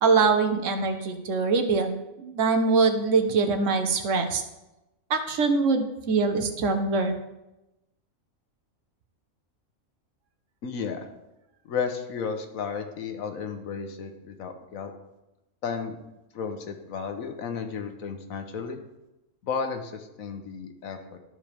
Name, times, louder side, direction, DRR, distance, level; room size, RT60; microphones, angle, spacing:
voice 1, 0.0-4.4 5.1-7.2, right 4 dB, 65° right, 7 dB, 1.2 m, -23 dB
voice 2, 10.6-11.0 11.7-14.9 15.6-16.0 16.3-18.8 19.4-21.2, left 6 dB, 80° left, 6 dB, 1.3 m, -33 dB
12.5 x 4.9 x 3.4 m, 0.97 s
omnidirectional pair, 1.4 m